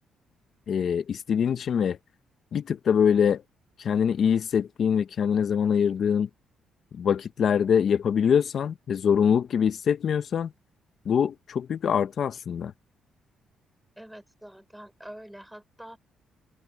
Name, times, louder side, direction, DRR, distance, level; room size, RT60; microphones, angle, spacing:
voice 1, 0.7-2.0 2.5-3.4 3.8-6.3 7.0-10.5 11.1-12.7, left 7 dB, 55° left, 0.8 m, -24 dB
voice 2, 14.0-16.0, right 1 dB, 5° right, 5.6 m, -45 dB
cardioid pair, 90°, 0 cm